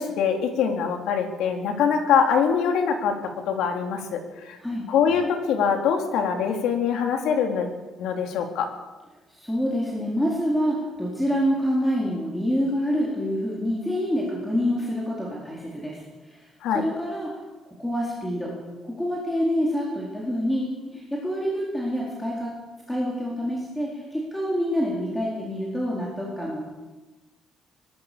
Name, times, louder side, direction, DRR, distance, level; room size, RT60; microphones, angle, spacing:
voice 1, 0.0-3.2 3.5-4.6 4.9-7.7 8.0-8.7 16.6-16.8, left 7 dB, 80° left, 4 dB, 4.0 m, -23 dB
voice 2, 4.6-4.9 9.3-16.0 16.3-16.5 16.7-17.4 17.7-18.5 18.8-22.5 22.9-26.6, equal, 5° left, -4 dB, 4.3 m, -27 dB
24.5 x 19.5 x 7.1 m, 1.2 s
cardioid pair, 170°, 0 cm